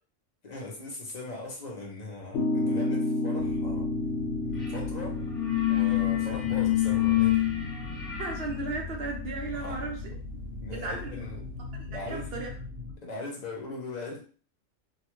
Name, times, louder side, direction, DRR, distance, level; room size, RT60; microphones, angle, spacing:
voice 1, 0.4-3.9 4.4-5.2 5.7-7.5 9.5-9.9 10.5-11.5 11.9-12.3 13.0-14.2, left 2 dB, 40° left, -1 dB, 0.7 m, -40 dB
sound 1, 2.3-8.7, left 2 dB, 70° left, 0.9 m, -32 dB
sound 2, 3.4-13.0, left 3 dB, 80° right, 1.5 m, -40 dB
sound 3, 4.6-4.8 5.1-11.7, left 16 dB, ahead, 0.7 m, -29 dB
voice 2, 8.2-10.0 10.7-11.1 11.8-12.5, right 3 dB, 60° right, 2 dB, 0.8 m, -35 dB
2.8 x 2.3 x 3.0 m, 0.40 s
omnidirectional pair, 1.3 m